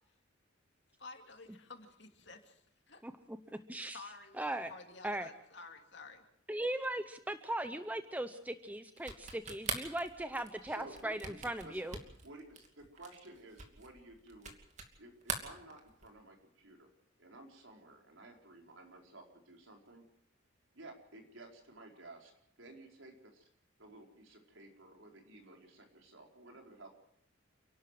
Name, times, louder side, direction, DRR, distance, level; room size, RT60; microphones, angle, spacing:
voice 1, 1.0-3.0 3.9-4.4 4.7-6.2, left 3 dB, 60° left, 4 dB, 2.8 m, -52 dB
voice 2, 3.0-3.4 3.7-4.0 4.4-4.7 5.0-5.3 6.5-12.0, right 1 dB, 10° right, 9 dB, 0.7 m, -38 dB
sound 1, 9.0-15.0 15.2-16.2, right 4 dB, 35° right, 2.7 m, -43 dB
voice 3, 10.3-11.9 12.2-14.5 15.0-16.9 17.2-20.0 20.7-22.3 22.6-23.5 23.8-26.9, right 2 dB, 80° right, 2 dB, 4.7 m, -54 dB
29.5 x 12.0 x 7.6 m, 0.77 s
head